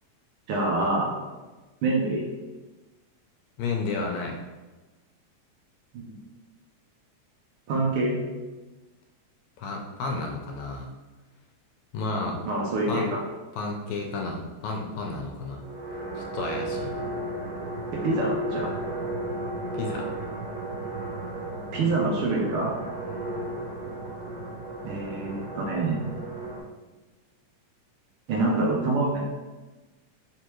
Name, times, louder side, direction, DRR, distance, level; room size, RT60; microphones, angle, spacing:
voice 1, 0.5-1.1 1.8-2.3 5.9-6.1 7.7-8.2 12.4-13.2 17.9-18.7 21.7-22.7 24.8-26.0 28.3-29.2, right 2 dB, 85° right, -2 dB, 1.2 m, -26 dB
voice 2, 3.6-4.4 9.6-10.9 11.9-12.4 12.9-13.1 13.5-15.6 16.2-16.9 19.7-20.1, left 3 dB, 80° left, 1 dB, 1.8 m, -32 dB
sound 1, 15.2-26.6, right 1 dB, 70° right, 1.8 m, -34 dB
4.4 x 3.3 x 3.0 m, 1.2 s
omnidirectional pair, 3.3 m